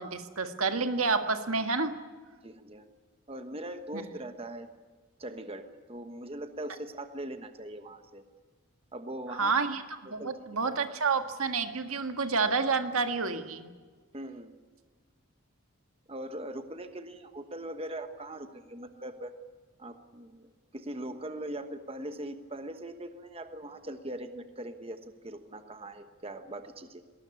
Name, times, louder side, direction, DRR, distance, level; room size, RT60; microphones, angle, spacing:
voice 1, 0.0-2.0 3.9-4.0 9.4-9.8 10.1-13.7, right 4 dB, 80° right, 7 dB, 1.8 m, -29 dB
voice 2, 2.4-2.8 3.3-4.7 5.2-8.3 8.9-9.5 10.1-10.3 10.8-10.9 14.1-14.5 16.1-19.3 19.8-27.0, right 1 dB, 25° right, 8 dB, 1.2 m, -41 dB
20.0 x 19.0 x 9.7 m, 1.5 s
head